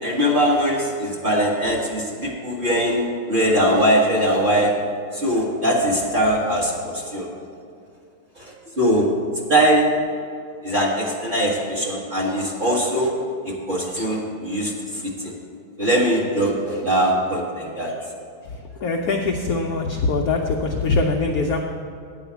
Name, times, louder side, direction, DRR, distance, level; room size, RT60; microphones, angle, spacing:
voice 1, 0.0-4.7 5.1-7.3 8.4-9.1 9.5-9.9 10.6-13.1 13.4-15.3 15.8-18.0, equal, 30° right, -3 dB, 1.3 m, -21 dB
voice 2, 18.8-21.6, left 3 dB, 75° left, 2 dB, 0.8 m, -22 dB
9.9 x 5.0 x 8.0 m, 2.3 s
omnidirectional pair, 2.3 m